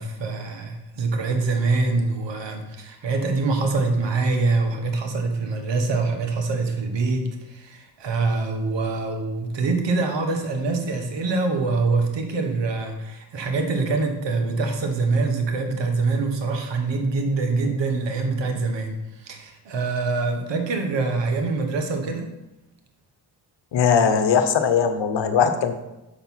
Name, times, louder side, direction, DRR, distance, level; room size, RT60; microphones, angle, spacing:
voice 1, 0.0-22.3, right 3 dB, 70° right, 5 dB, 1.4 m, -24 dB
voice 2, 23.7-25.7, left 6 dB, 70° left, 9 dB, 1.0 m, -20 dB
6.5 x 5.8 x 5.6 m, 0.97 s
supercardioid pair, 45°, 45 cm